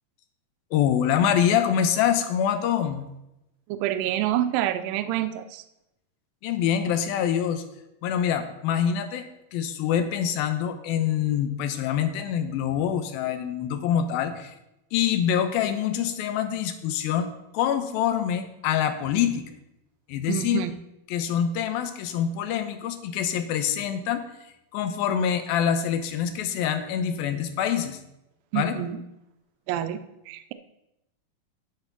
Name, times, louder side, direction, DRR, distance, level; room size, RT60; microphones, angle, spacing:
voice 1, 0.7-3.1 6.4-7.6 8.0-14.5 14.9-17.3 17.5-19.5 20.1-20.6 21.1-24.2 24.7-28.0 28.5-28.8, left 9 dB, 80° left, 9 dB, 2.6 m, -25 dB
voice 2, 3.7-5.6 20.3-20.8 28.5-29.0 29.7-30.5, right 12 dB, 80° right, 10 dB, 2.3 m, -27 dB
11.5 x 5.6 x 5.8 m, 0.89 s
omnidirectional pair, 4.2 m